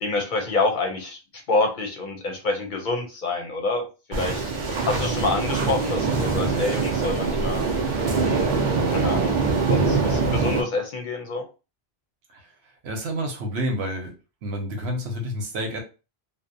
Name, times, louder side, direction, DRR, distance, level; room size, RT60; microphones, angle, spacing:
voice 1, 0.0-1.2 1.5-4.4 4.9-7.6 8.1-8.6 8.9-9.4 9.7-11.4, left 3 dB, 55° left, 4 dB, 0.6 m, -27 dB
sound 1, 4.1-10.6, right 4 dB, 55° right, 0.6 m, -23 dB
voice 2, 12.8-14.1 14.4-15.8, equal, 85° right, 3 dB, 1.0 m, -29 dB
2.6 x 2.0 x 2.6 m, 0.31 s
omnidirectional pair, 1.1 m